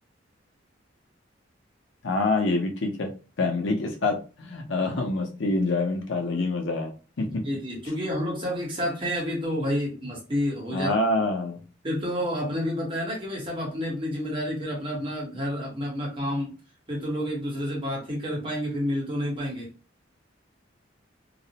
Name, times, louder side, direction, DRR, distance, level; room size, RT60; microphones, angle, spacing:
voice 1, 2.0-3.1 3.4-7.3 10.7-11.6, left 2 dB, 80° left, 2 dB, 0.7 m, -26 dB
voice 2, 7.3-10.9 11.8-16.5 16.9-19.7, equal, 30° right, -3 dB, 1.0 m, -29 dB
2.4 x 2.0 x 2.8 m, 0.33 s
head